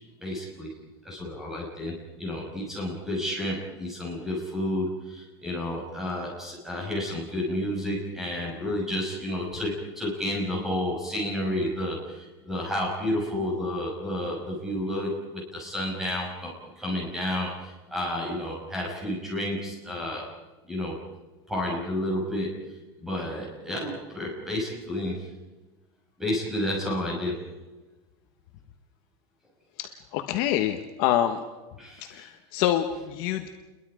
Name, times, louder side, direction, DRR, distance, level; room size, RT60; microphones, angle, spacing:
voice 1, 0.2-0.7 1.0-20.3 20.7-21.0 21.5-22.7 23.0-25.3 26.2-27.4 31.8-32.3, left 1 dB, 5° right, -2 dB, 5.7 m, -31 dB
voice 2, 29.8-31.4 32.1-33.5, left 11 dB, 40° left, 6 dB, 1.2 m, -26 dB
29.5 x 22.5 x 5.0 m, 1.2 s
supercardioid pair, 175°, 13 cm